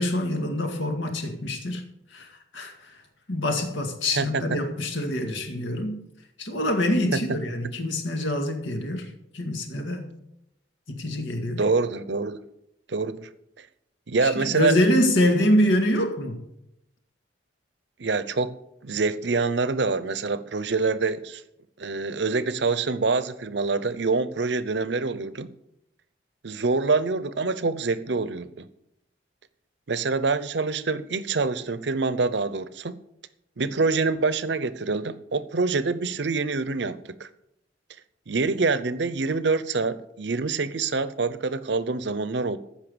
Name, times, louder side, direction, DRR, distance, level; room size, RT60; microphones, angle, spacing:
voice 1, 0.0-1.8 2.1-3.0 3.3-6.0 6.4-9.1 9.3-10.1 10.9-11.6 14.2-16.4, left 1 dB, 85° left, 2.1 m, -25 dB
voice 2, 11.5-12.4 12.9-13.3 14.1-14.8 18.0-18.6 18.8-21.4 21.8-25.5 26.4-28.7 29.9-32.9 33.6-37.3 38.3-42.6, right 4 dB, 65° right, 0.7 m, -26 dB
14.5 x 5.7 x 6.9 m
head